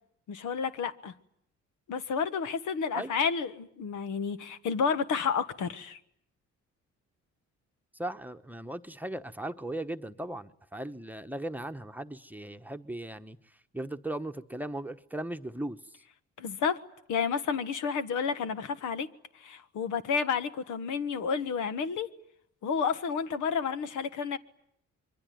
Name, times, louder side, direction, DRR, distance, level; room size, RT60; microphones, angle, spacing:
voice 1, 0.3-1.1 1.9-6.0 16.4-16.8 17.1-19.1 19.3-22.1 22.6-24.4, left 6 dB, 75° left, 1.5 m, -30 dB
voice 2, 8.0-13.4 13.7-15.8, right 1 dB, 5° right, 1.1 m, -37 dB
26.5 x 23.5 x 9.4 m
cardioid pair, 90°, 30 cm